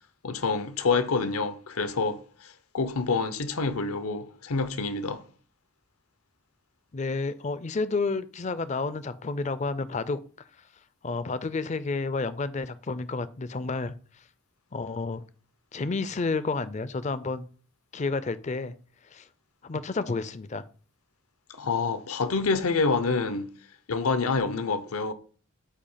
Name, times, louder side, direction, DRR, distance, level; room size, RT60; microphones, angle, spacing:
voice 1, 0.2-5.2 21.5-23.5 23.9-25.1, left 4 dB, 80° left, 0.8 m, -27 dB
voice 2, 6.9-10.2 11.0-13.9 14.7-15.2 15.7-17.5 17.9-18.7 19.1-19.3 19.6-20.6, left 3 dB, 30° left, 0.4 m, -30 dB
8.3 x 2.8 x 5.6 m
head